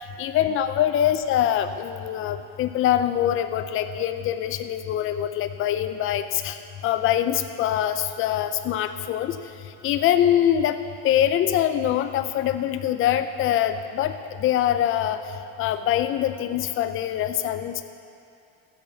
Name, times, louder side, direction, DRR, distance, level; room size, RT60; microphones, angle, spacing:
voice 1, 0.2-6.6 6.8-9.4 9.8-10.8 11.0-14.1 14.4-15.2 15.6-17.8, left 11 dB, 40° left, 9 dB, 0.6 m, -23 dB
15.0 x 5.9 x 7.2 m, 2.6 s
cardioid pair, 130°, 32 cm